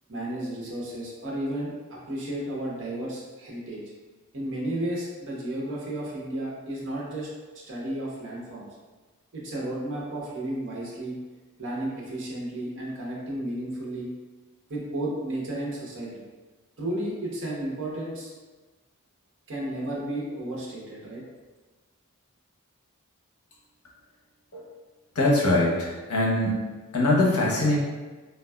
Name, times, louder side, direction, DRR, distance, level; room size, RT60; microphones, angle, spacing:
voice 1, 0.1-3.8 4.3-8.7 9.3-11.2 11.6-14.1 14.7-16.2 16.8-18.3 19.5-21.2, right 1 dB, 55° right, -4 dB, 0.8 m, -33 dB
voice 2, 25.2-26.6 26.9-27.8, left 2 dB, 80° left, -3 dB, 0.7 m, -22 dB
3.4 x 2.2 x 2.2 m, 1.3 s
head